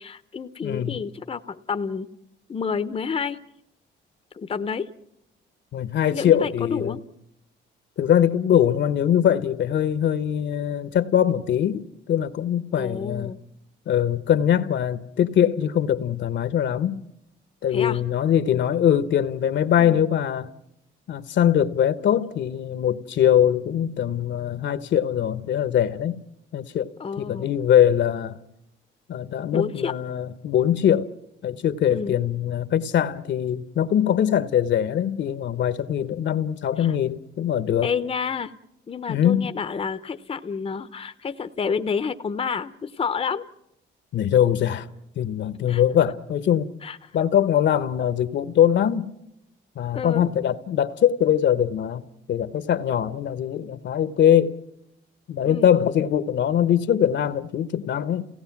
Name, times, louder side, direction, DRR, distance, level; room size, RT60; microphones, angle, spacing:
voice 1, 0.0-2.1 2.5-3.4 4.3-4.9 6.1-7.0 12.8-13.4 17.7-18.0 19.8-20.0 27.0-27.5 29.5-29.9 31.9-32.2 36.8-36.9 37.8-38.5 38.9-43.4 45.7-45.8 46.8-47.0 49.9-50.3 55.4-55.7, left 6 dB, 30° left, 0.7 m, -29 dB
voice 2, 0.6-0.9 5.7-7.0 8.0-13.3 13.9-17.0 17.6-20.5 21.1-26.2 26.5-26.9 27.2-28.4 29.1-31.1 31.4-37.9 39.1-39.5 44.1-44.9 45.2-46.7 47.1-49.1 49.8-54.6 55.3-58.3, left 10 dB, 65° left, 0.9 m, -22 dB
28.5 x 17.5 x 5.9 m
cardioid pair, 90°, 20 cm